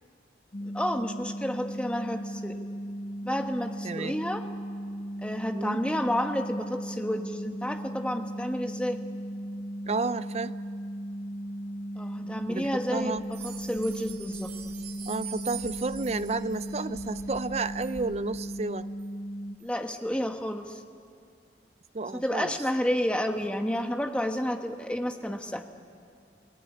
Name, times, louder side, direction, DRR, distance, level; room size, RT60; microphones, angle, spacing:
sound 1, 0.5-19.6, equal, 40° left, 0.8 m, -37 dB
voice 1, 0.6-2.6 3.2-4.4 5.2-9.0 12.0-14.5 19.6-20.8 22.1-25.6, equal, 5° left, 5 dB, 1.2 m, -30 dB
voice 2, 3.8-4.2 5.5-5.8 9.9-10.6 12.2-13.2 15.1-18.9 21.9-22.5, right 3 dB, 35° right, 14 dB, 0.5 m, -31 dB
sound 2, 12.3-18.4, equal, 15° right, 4.2 m, -53 dB
sound 3, 13.2-18.0 18.4-18.5 19.0-19.1 19.6-19.7, right 10 dB, 75° right, 4.1 m, -44 dB
29.0 x 19.0 x 8.4 m, 2.2 s
head